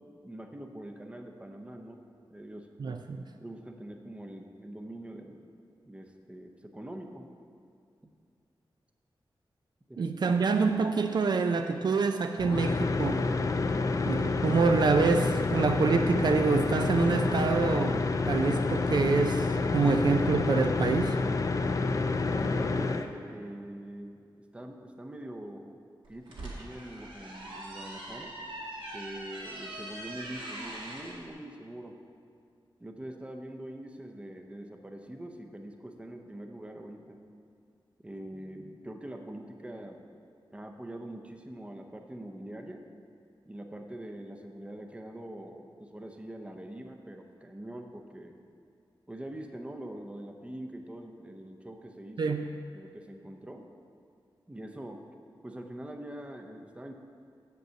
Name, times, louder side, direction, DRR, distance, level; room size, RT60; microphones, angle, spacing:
voice 1, 0.0-2.0 2.3-2.7 3.3-5.5 5.9-7.3 9.9-10.1 21.8-24.3 24.5-25.8 26.1-28.3 28.9-32.0 32.8-37.2 38.0-40.0 40.5-42.9 43.4-48.4 49.1-52.3 52.7-53.7 54.5-55.0 55.4-56.9, right 1 dB, 15° right, 4 dB, 0.6 m, -43 dB
voice 2, 2.8-3.2 10.0-13.2 14.0-21.2 52.2-52.5, right 4 dB, 55° right, 6 dB, 0.3 m, -26 dB
sound 1, 12.4-23.1, left 3 dB, 40° left, 0.4 m, -28 dB
sound 2, 26.0-31.2, right 1 dB, 75° right, 1.9 m, -42 dB
7.5 x 5.3 x 6.8 m, 2.3 s
wide cardioid pair, 135°, 9 cm